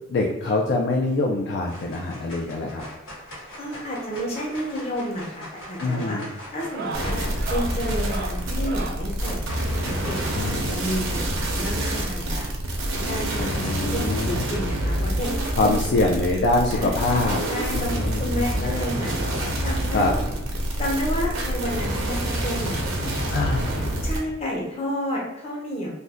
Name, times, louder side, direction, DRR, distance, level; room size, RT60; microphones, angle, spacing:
voice 1, 0.1-2.8 5.8-6.3 10.3-10.8 13.4-14.4 15.6-17.4 17.7-18.7 19.9-20.1 23.3-23.7, left 2 dB, 55° left, 0 dB, 0.3 m, -24 dB
sound 1, 1.0-1.3 1.7-10.5, left 1 dB, 85° left, 1.2 m, -42 dB
voice 2, 3.6-6.2 6.5-9.4 9.7-12.5 13.1-15.3 15.6-16.0 16.7-17.9 18.2-20.2 20.8-23.2 24.0-25.9, equal, 30° left, -3 dB, 0.8 m, -31 dB
sound 2, 5.2-5.3 5.6-6.0 6.5-9.1 10.4-11.8 12.8-12.9 13.1-13.2 13.7-13.8 15.1-15.2 16.5-16.6, right 4 dB, 50° right, 0.3 m, -38 dB
sound 3, 6.9-24.2, right 1 dB, 85° right, 0.7 m, -27 dB
2.6 x 2.1 x 3.4 m, 0.92 s
head